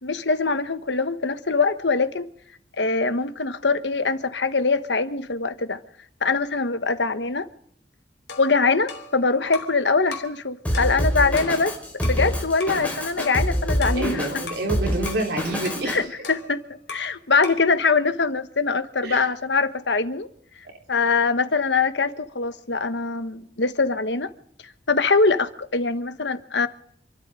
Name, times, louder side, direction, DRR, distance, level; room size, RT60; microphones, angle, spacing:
voice 1, 0.0-2.3 2.8-5.8 6.2-7.5 8.4-11.7 12.0-14.3 15.9-16.6 16.9-20.3 20.9-24.3 24.6-26.7, left 4 dB, 90° left, 11 dB, 1.3 m, -23 dB
sound 1, 8.3-9.8 10.1-10.4 10.7-12.3 12.6-12.8 13.2-14.7 15.1-15.3 15.6-17.2 17.4-17.7, left 3 dB, 70° left, 2.9 m, -39 dB
Drum kit, 10.6-16.0, equal, 10° left, 4.8 m, -26 dB
voice 2, 14.0-16.0 19.0-19.3, right 2 dB, 70° right, 1 dB, 4.3 m, -28 dB
27.5 x 13.0 x 3.8 m, 0.63 s
head